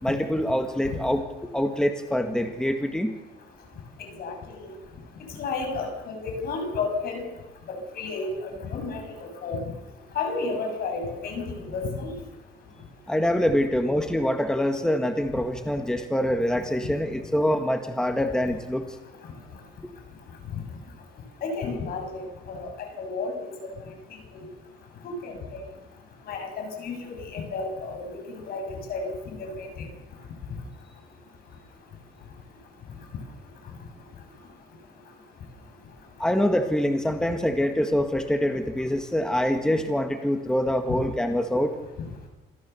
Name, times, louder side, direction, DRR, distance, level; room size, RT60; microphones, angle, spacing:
voice 1, 0.0-1.2 1.5-3.2 13.1-18.9 36.2-41.7, equal, 5° left, 6 dB, 1.7 m, -25 dB
voice 2, 4.0-4.3 4.6-4.7 5.4-7.2 7.7-9.0 9.4-9.6 10.1-12.1 21.4-22.2 22.5-23.4 24.3-24.4 25.0-25.6 26.3-29.7, left 4 dB, 65° left, 4 dB, 6.7 m, -32 dB
27.0 x 14.5 x 6.9 m, 1.1 s
cardioid pair, 110°, 17 cm